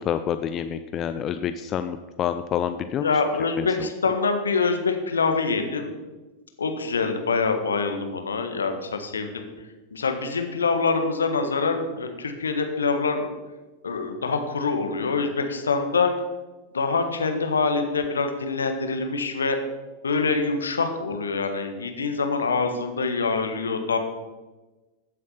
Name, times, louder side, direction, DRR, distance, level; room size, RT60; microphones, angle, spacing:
voice 1, 0.0-3.1 3.6-3.9, left 9 dB, 30° left, 10 dB, 0.6 m, -28 dB
voice 2, 3.0-5.9 6.6-9.4 9.9-13.3 13.8-16.1 16.7-19.6 20.0-24.0, left 4 dB, 70° left, 6 dB, 1.6 m, -25 dB
15.0 x 7.7 x 5.8 m, 1.2 s
figure-of-eight pair, 90°, 0 cm